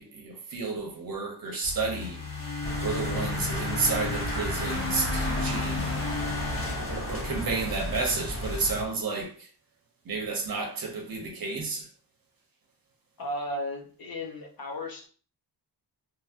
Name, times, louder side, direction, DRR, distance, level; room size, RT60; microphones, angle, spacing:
voice 1, 0.0-2.2 2.8-5.9 6.9-9.5 10.1-11.9, right 4 dB, 55° right, 0.9 m, -31 dB
sound 1, 1.6-7.8, left 3 dB, 85° left, 1.4 m, -34 dB
sound 2, 2.6-8.8, equal, 30° left, 1.1 m, -33 dB
voice 2, 13.2-15.1, left 1 dB, 55° left, 0.8 m, -35 dB
2.9 x 2.8 x 2.5 m
wide cardioid pair, 160°, 41 cm